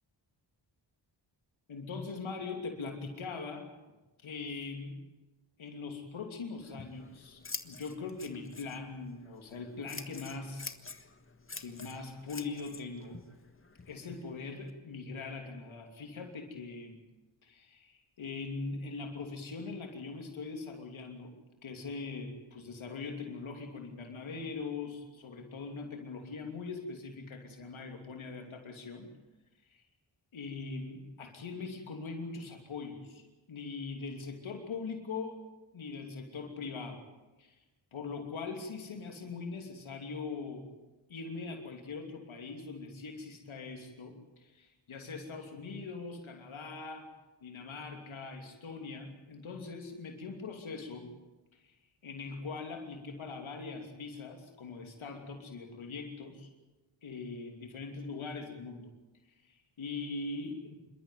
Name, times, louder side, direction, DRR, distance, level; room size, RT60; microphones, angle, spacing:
voice 1, 1.7-3.7 4.2-5.0 5.6-10.7 11.6-13.2 13.9-17.0 17.4-21.3 21.6-29.1 29.7-29.8 30.3-35.4 35.7-37.0 37.9-40.6 41.1-47.1 47.4-51.1 51.6-51.8 52.0-56.5 57.0-58.9 59.4-60.8, left 4 dB, 80° left, 3 dB, 3.0 m, -41 dB
Scissors, 6.6-14.7, left 3 dB, 25° left, 1.6 m, -48 dB
26.5 x 13.0 x 9.3 m, 1.1 s
cardioid pair, 70°, 47 cm